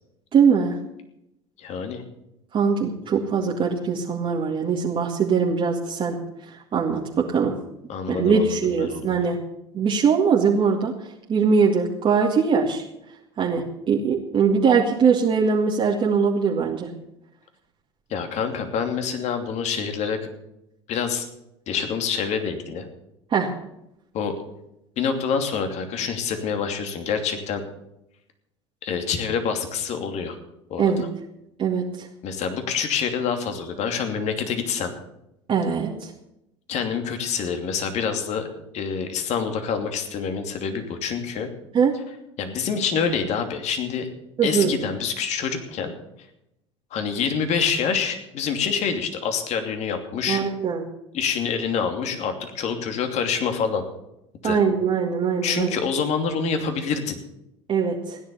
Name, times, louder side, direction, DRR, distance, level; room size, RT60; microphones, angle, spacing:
voice 1, 0.3-0.8 2.5-6.2 6.5-7.5 8.1-9.4 9.7-10.9 11.3-12.8 13.4-16.9 23.3-23.5 30.8-31.0 31.6-32.1 35.5-36.1 41.7-41.9 44.4-44.7 50.3-50.8 54.4-55.8 57.7-58.2, right 6 dB, 35° right, -2 dB, 2.1 m, -21 dB
voice 2, 1.6-2.0 7.9-9.2 18.1-20.2 20.9-21.3 21.7-22.9 24.1-24.3 25.0-27.6 28.8-30.4 30.7-30.9 32.2-34.9 36.7-41.5 42.4-44.1 44.4-45.9 46.9-50.4 51.1-53.8 54.4-54.6 55.4-57.2, left 6 dB, 50° left, 6 dB, 2.8 m, -26 dB
16.5 x 10.5 x 7.0 m, 0.85 s
hypercardioid pair, 80°, 15 cm